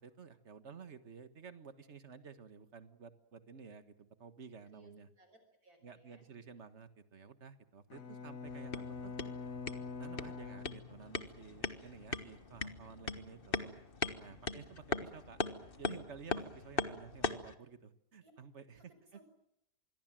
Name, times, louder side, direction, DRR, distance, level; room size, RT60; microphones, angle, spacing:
voice 1, 0.0-5.1 5.8-9.1 10.0-13.7 14.2-15.4 15.8-18.9, right 6 dB, 45° right, 11 dB, 1.8 m, -53 dB
voice 2, 5.2-6.3 18.2-18.3 18.8-19.2, right 2 dB, 60° right, 7 dB, 6.0 m, -64 dB
Bowed string instrument, 7.9-11.5, left 4 dB, 55° left, 1.7 m, -45 dB
sound 1, 8.5-17.5, left 4 dB, 35° left, 1.4 m, -40 dB
26.5 x 22.0 x 7.7 m, 0.77 s
omnidirectional pair, 1.8 m